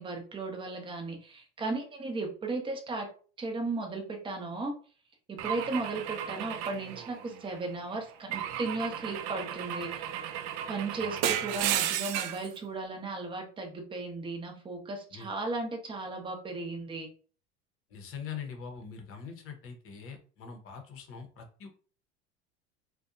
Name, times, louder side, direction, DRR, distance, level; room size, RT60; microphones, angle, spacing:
voice 1, 0.0-3.1 3.4-4.7 5.3-10.3 10.7-17.1, right 3 dB, 15° right, 2 dB, 0.7 m, -36 dB
Car / Engine / Glass, 5.4-7.6 8.3-12.5, right 10 dB, 50° right, 0.4 m, -34 dB
voice 2, 11.0-11.4 15.1-15.3 17.9-21.7, left 6 dB, 40° left, 4 dB, 0.8 m, -43 dB
2.6 x 2.2 x 2.5 m, 0.40 s
hypercardioid pair, 85°, 33 cm